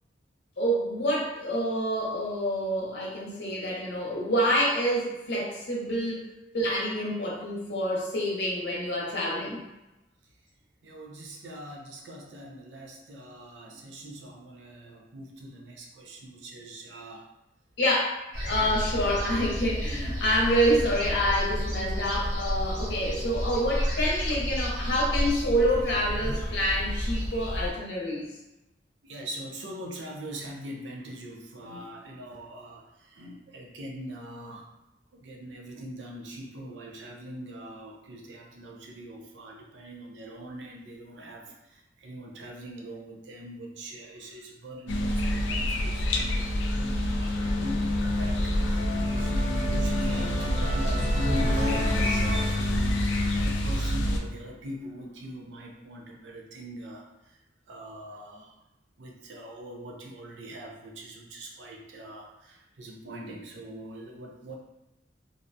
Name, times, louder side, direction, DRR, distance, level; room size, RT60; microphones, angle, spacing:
voice 1, 0.6-6.2 6.5-9.6 17.8-18.2 18.5-28.3, equal, 65° left, -4 dB, 0.7 m, -27 dB
voice 2, 10.8-17.2 18.6-18.8 29.0-34.7 35.1-57.4 57.7-58.6 59.0-64.5, equal, 80° right, 0 dB, 0.5 m, -41 dB
sound 1, 18.3-27.7, equal, 50° right, 1.2 m, -31 dB
sound 2, 44.9-54.2, left 1 dB, 85° left, 0.4 m, -27 dB
sound 3, 45.1-54.1, equal, 35° right, 0.6 m, -35 dB
2.5 x 2.1 x 2.6 m, 0.97 s
head